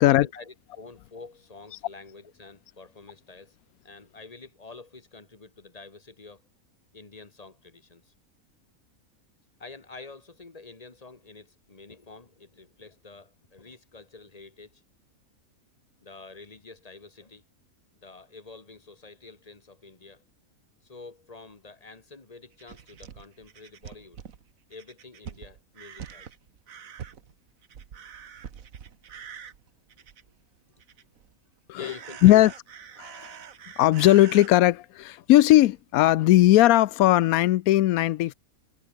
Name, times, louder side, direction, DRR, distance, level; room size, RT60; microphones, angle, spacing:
voice 1, 0.0-3.6 3.8-6.4 6.9-8.1 9.6-14.8 16.0-17.4 18.0-20.2 20.8-24.2 24.7-26.3 30.0-30.3 31.7-32.5, left 3 dB, 25° left, 2.0 m, -48 dB
sound 1, 22.5-30.4 30.7-31.3 31.8-34.5 35.3-35.4 35.8-35.9, right 7 dB, 75° right, 1.7 m, -44 dB
voice 2, 32.2-32.5 33.0-33.3 33.8-38.3, left 15 dB, 90° left, 1.0 m, -18 dB
omnidirectional pair, 1.5 m